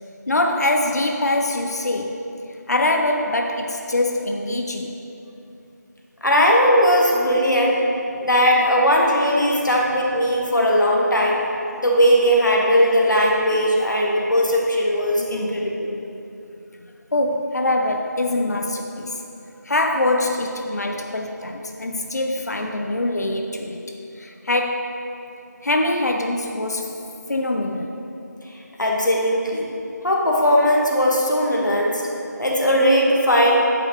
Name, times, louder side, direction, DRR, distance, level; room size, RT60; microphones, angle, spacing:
voice 1, 0.3-2.3 2.7-4.9 15.1-15.7 17.1-19.2 19.6-25.0 25.6-27.0 27.3-28.0, left 2 dB, 60° left, 3 dB, 0.5 m, -24 dB
voice 2, 6.2-7.8 8.2-11.4 11.8-16.0 28.8-29.7 30.0-32.0 32.4-33.6, equal, 75° left, -2 dB, 1.4 m, -18 dB
9.8 x 5.9 x 3.0 m, 2.8 s
figure-of-eight pair, 170°, 10 cm